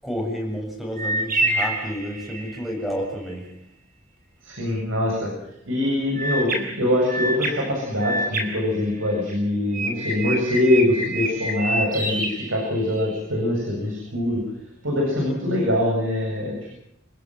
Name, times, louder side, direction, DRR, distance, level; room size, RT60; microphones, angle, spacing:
voice 1, 0.0-3.5, equal, ahead, 1 dB, 7.6 m, -30 dB
sound 1, 1.0-2.7 6.2-9.3 9.7-13.2, right 1 dB, 45° right, 6.1 m, -28 dB
voice 2, 4.4-5.3 5.7-14.4 14.8-16.7, left 1 dB, 90° right, 0 dB, 7.8 m, -23 dB
28.5 x 16.5 x 7.9 m, 0.78 s
head